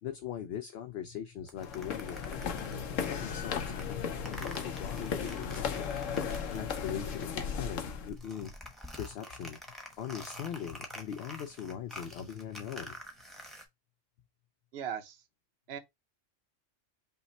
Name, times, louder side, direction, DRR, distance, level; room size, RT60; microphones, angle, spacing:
voice 1, 0.0-2.6 3.1-5.9 6.5-8.5 9.0-9.6 10.0-12.9, left 9 dB, 65° left, 0.7 m, -40 dB
sound 1, 1.5-7.5 7.8-13.7, equal, ahead, 0.8 m, -48 dB
sound 2, 1.6-8.1, left 6 dB, 85° left, 1.1 m, -36 dB
voice 2, 14.7-15.2 15.7-15.8, right 8 dB, 60° right, 0.9 m, -38 dB
5.6 x 2.1 x 4.1 m
omnidirectional pair, 1.3 m